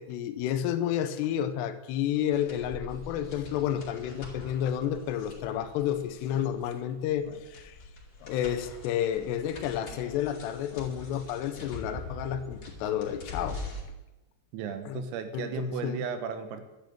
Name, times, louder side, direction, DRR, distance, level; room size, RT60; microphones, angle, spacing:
voice 1, 0.0-7.8 8.3-13.6 14.9-15.0 15.3-16.0, left 10 dB, 85° left, 8 dB, 2.5 m, -31 dB
Speech synthesizer, 2.1-2.3 2.7-2.8 3.1-3.4 3.7-3.8 4.3-4.5 4.8-4.9 5.2-5.5 6.2-6.5 7.2-7.8 8.1-8.7 9.1-9.3 9.9-10.0 10.7-11.2 11.5-12.0, left 6 dB, 60° left, 3.2 m, -52 dB
sound 1, 2.3-13.8, left 2 dB, 35° left, 1.9 m, -43 dB
voice 2, 14.5-16.7, right 7 dB, 85° right, 9 dB, 3.8 m, -35 dB
12.0 x 8.2 x 8.5 m, 1.1 s
omnidirectional pair, 5.9 m